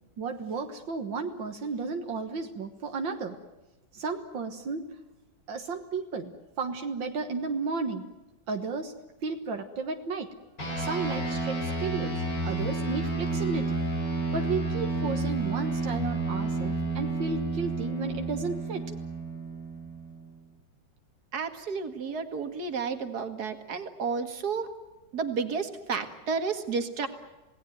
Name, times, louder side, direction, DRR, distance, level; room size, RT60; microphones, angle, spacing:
voice 1, 0.2-3.4 3.9-4.9 5.5-6.3 6.6-8.0 8.5-8.9 9.2-10.3 10.8-13.8 14.3-18.9, right 4 dB, 80° right, 5 dB, 2.2 m, -33 dB
sound 1, 10.6-20.3, right 2 dB, 70° left, 6.6 m, -31 dB
voice 2, 21.3-24.7 25.1-27.1, right 5 dB, 55° right, 8 dB, 2.5 m, -31 dB
27.5 x 18.5 x 9.3 m, 1.1 s
omnidirectional pair, 2.0 m